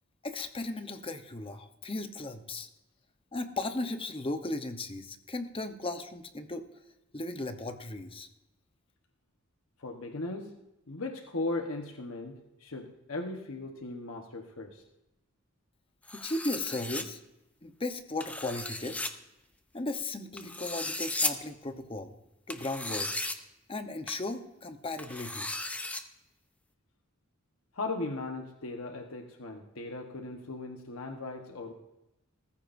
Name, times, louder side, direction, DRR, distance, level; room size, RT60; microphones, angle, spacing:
voice 1, 0.2-2.7 3.3-6.7 7.1-8.3 16.1-17.2 17.6-19.0 19.7-22.1 22.5-23.1 23.7-25.5, left 2 dB, 25° left, 8 dB, 0.9 m, -36 dB
voice 2, 9.8-10.6 10.9-12.3 12.6-14.8 27.7-31.7, left 2 dB, 80° left, 3 dB, 1.2 m, -37 dB
sound 1, 16.1-17.0 18.2-19.1 20.4-21.3 22.5-23.4 24.1-24.2 25.0-26.0, left 2 dB, 5° left, 0.6 m, -35 dB
19.0 x 14.5 x 2.6 m, 0.93 s
head